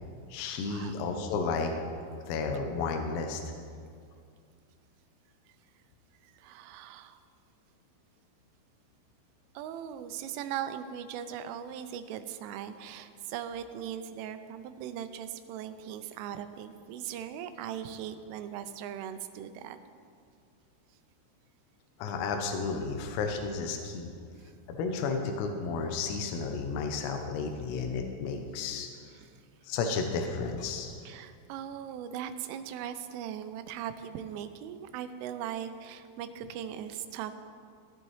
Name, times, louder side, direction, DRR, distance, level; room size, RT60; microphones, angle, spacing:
voice 1, 0.3-1.7 2.3-3.4 22.0-24.1 24.7-28.9 29.6-31.0, left 4 dB, 85° left, 4 dB, 3.4 m, -32 dB
voice 2, 6.2-7.2 9.5-19.8 24.4-24.5 29.2-29.3 31.1-37.3, right 9 dB, 85° right, 9 dB, 2.9 m, -39 dB
16.5 x 10.5 x 3.2 m, 2.2 s
omnidirectional pair, 6.0 m